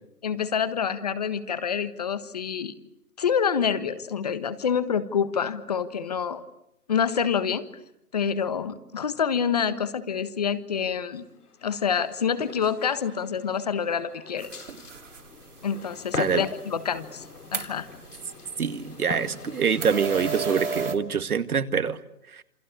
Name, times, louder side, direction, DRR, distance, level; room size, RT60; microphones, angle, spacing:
voice 1, 0.2-2.7 3.2-6.4 6.9-7.6 8.1-11.2 11.6-14.5 15.6-17.2 17.5-17.9, left 7 dB, 25° left, 13 dB, 1.3 m, -27 dB
sound 1, 11.4-20.9, left 5 dB, 80° left, 3.1 m, -41 dB
sound 2, 14.4-20.9, right 5 dB, 55° right, 3.1 m, -37 dB
voice 2, 18.6-22.0 22.3-22.4, right 6 dB, 75° right, 10 dB, 2.1 m, -25 dB
28.5 x 25.0 x 8.5 m, 0.82 s
hypercardioid pair, 170°, 45 cm